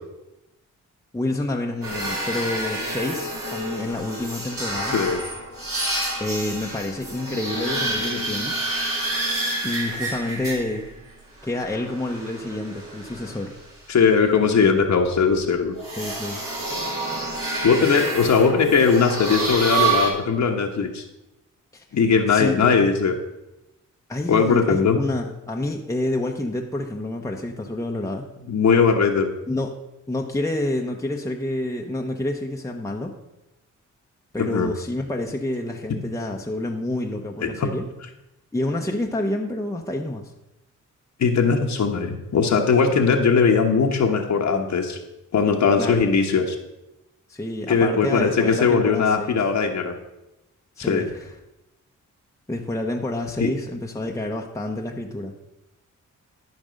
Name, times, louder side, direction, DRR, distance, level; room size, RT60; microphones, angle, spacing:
voice 1, 1.1-5.0 6.2-8.5 9.6-10.8 11.4-13.5 16.0-16.4 21.7-21.8 22.3-22.6 24.1-28.3 29.5-29.7 30.1-33.1 34.3-37.9 38.5-40.2 45.8-46.1 47.3-49.3 50.8-51.3 52.5-55.3, left 1 dB, 10° left, 0 dB, 1.0 m, -28 dB
sound 1, 1.8-10.9 11.4-13.6 15.7-20.1, right 2 dB, 45° right, 3.7 m, -28 dB
voice 2, 13.9-15.7 17.6-21.0 21.9-23.1 24.3-25.0 28.5-29.3 34.4-34.7 37.4-37.7 41.2-45.0 45.3-46.6 47.7-49.9 50.8-51.0 53.4-53.5, left 5 dB, 65° left, 2 dB, 1.2 m, -19 dB
12.5 x 5.3 x 5.2 m, 0.93 s
cardioid pair, 75°, 31 cm